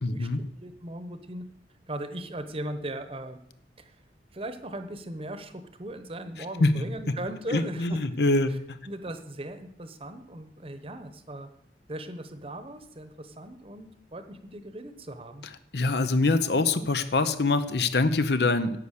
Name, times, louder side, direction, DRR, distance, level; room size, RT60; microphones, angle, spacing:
voice 1, 0.0-0.4 6.6-6.7 7.1-7.2 7.5-8.8 15.7-18.8, left 3 dB, 65° left, 11 dB, 0.8 m, -24 dB
voice 2, 0.6-1.5 1.9-3.4 3.8-4.0 4.3-8.0 8.5-8.6 8.8-11.5 11.9-15.4, right 1 dB, 30° right, 9 dB, 1.0 m, -38 dB
11.0 x 8.1 x 6.6 m, 0.75 s
head